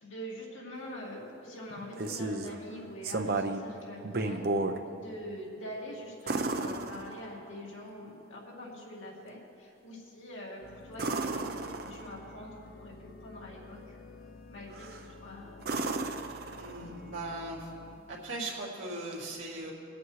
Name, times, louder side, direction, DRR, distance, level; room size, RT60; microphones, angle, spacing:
voice 1, 0.0-4.4 4.9-14.0 14.5-15.7, equal, 90° left, -4 dB, 2.4 m, -44 dB
sound 1, 1.7-2.6 3.0-3.7 4.0-4.8 6.3-7.5 10.9-12.2 14.7-15.1 15.6-17.0 19.1-19.2, right 3 dB, 50° right, 0.6 m, -33 dB
sound 2, 10.6-18.0, left 4 dB, 50° left, 0.5 m, -51 dB
voice 2, 16.6-17.7 18.1-19.7, right 2 dB, 75° right, -4 dB, 2.2 m, -39 dB
23.0 x 8.3 x 3.2 m, 2.5 s
head